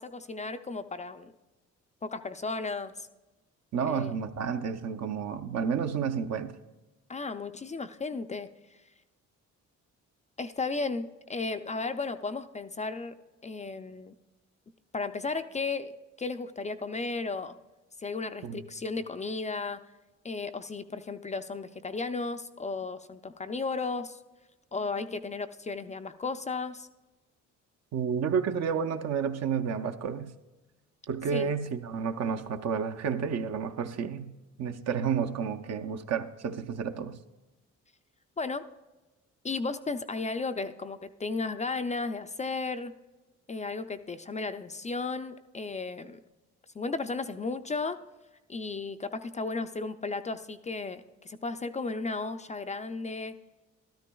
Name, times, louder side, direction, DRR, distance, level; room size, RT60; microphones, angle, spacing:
voice 1, 0.0-1.3 2.0-3.1 3.8-4.2 7.1-8.5 10.4-13.1 13.4-14.1 14.9-17.6 18.0-19.8 20.2-24.2 24.7-26.9 31.3-31.5 38.4-38.7 39.4-42.9 43.5-46.2 46.8-48.0 48.5-53.3, left 3 dB, 25° left, 0.4 m, -34 dB
voice 2, 3.7-6.5 18.4-18.6 27.9-30.3 31.1-37.2, right 6 dB, 60° right, 0.7 m, -31 dB
13.0 x 12.5 x 2.3 m
cardioid pair, 90°, 30 cm